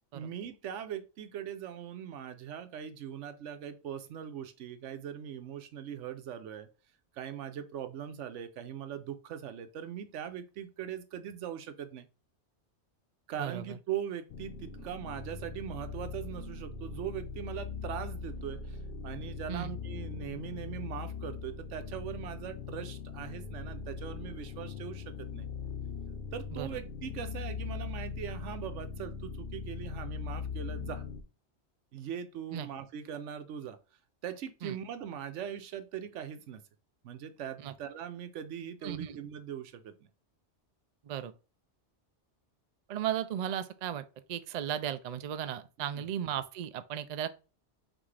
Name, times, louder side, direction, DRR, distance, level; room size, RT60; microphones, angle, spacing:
voice 1, 0.1-6.7 7.1-12.1 13.3-18.8 19.0-25.5 26.3-31.1 31.9-33.8 34.2-36.6 37.0-40.1 45.8-46.0, right 9 dB, 85° right, 1.0 m, -41 dB
voice 2, 13.4-13.8 19.5-19.7 26.5-26.8 32.5-32.7 34.6-34.8 37.6-37.7 38.8-39.2 41.0-41.3 42.9-47.3, right 10 dB, 65° right, 0.4 m, -36 dB
sound 1, 14.3-31.2, left 5 dB, 55° left, 0.7 m, -40 dB
6.0 x 2.6 x 3.3 m
omnidirectional pair, 1.2 m